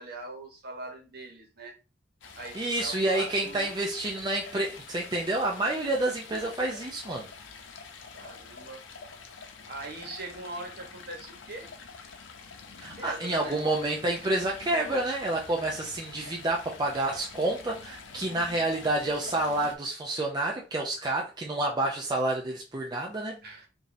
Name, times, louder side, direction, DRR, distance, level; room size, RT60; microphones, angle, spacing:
voice 1, 0.0-1.7 2.4-3.7 8.1-8.8 9.7-11.7 13.0-13.6 23.4-23.7, right 2 dB, 55° right, 1.2 m, -41 dB
Stream, 2.2-19.8, left 5 dB, 85° left, 0.7 m, -46 dB
voice 2, 2.5-7.3 12.8-23.4, right 2 dB, 20° right, 0.5 m, -29 dB
5.0 x 2.6 x 2.7 m
head